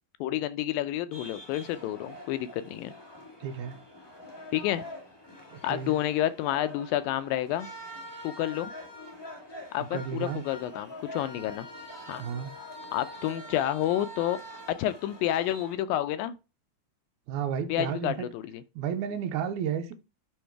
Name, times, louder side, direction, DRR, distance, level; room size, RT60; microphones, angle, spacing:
voice 1, 0.2-2.9 4.5-4.8 5.6-7.7 8.2-8.7 9.7-11.7 12.1-12.2 12.9-14.4 14.8-16.4 17.7-18.6, left 12 dB, 80° left, 2.2 m, -29 dB
sound 1, 1.1-15.7, left 1 dB, 20° left, 0.6 m, -45 dB
voice 2, 3.4-3.8 5.5-5.9 9.9-10.4 12.2-12.5 17.3-18.3 18.8-19.9, right 8 dB, 75° right, 1.8 m, -32 dB
10.5 x 3.9 x 4.6 m
omnidirectional pair, 4.2 m